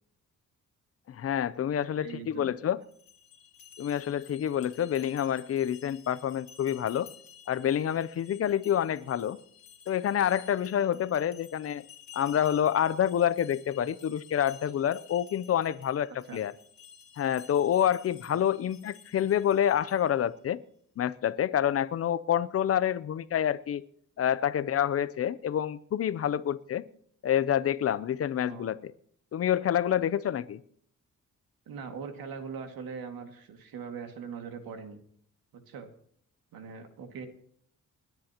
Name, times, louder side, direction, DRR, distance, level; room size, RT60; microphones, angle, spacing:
voice 1, 1.1-2.8 3.8-7.1 7.5-9.4 9.9-11.9 12.1-16.5 17.2-20.6 21.0-23.8 24.2-26.8 27.2-28.9 29.3-30.6, left 10 dB, 45° left, 0.5 m, -28 dB
voice 2, 2.0-2.6 16.2-16.4 18.3-18.4 28.5-28.7 31.7-35.0 35.7-35.9 36.5-37.3, right 6 dB, 90° right, 2.1 m, -41 dB
sound 1, 2.8-20.3, left 8 dB, 70° left, 3.0 m, -53 dB
30.0 x 10.5 x 2.9 m
wide cardioid pair, 175°, 34 cm